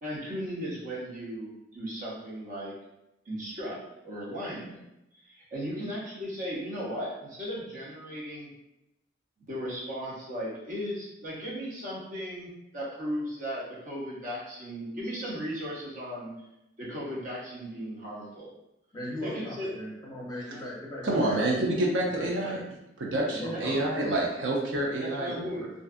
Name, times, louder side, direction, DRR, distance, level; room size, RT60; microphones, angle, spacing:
voice 1, 0.0-2.7 3.3-3.8 4.0-4.8 5.1-8.5 9.5-16.3 16.8-18.5 19.2-19.8 23.5-23.7 25.0-25.7, equal, 45° right, -6 dB, 0.8 m, -36 dB
voice 2, 18.9-21.5 22.2-22.6 23.3-24.1, left 1 dB, 20° left, -5 dB, 0.6 m, -39 dB
voice 3, 21.0-22.6 23.0-25.6, right 1 dB, 70° right, -2 dB, 0.5 m, -28 dB
2.6 x 2.4 x 2.4 m, 0.88 s
head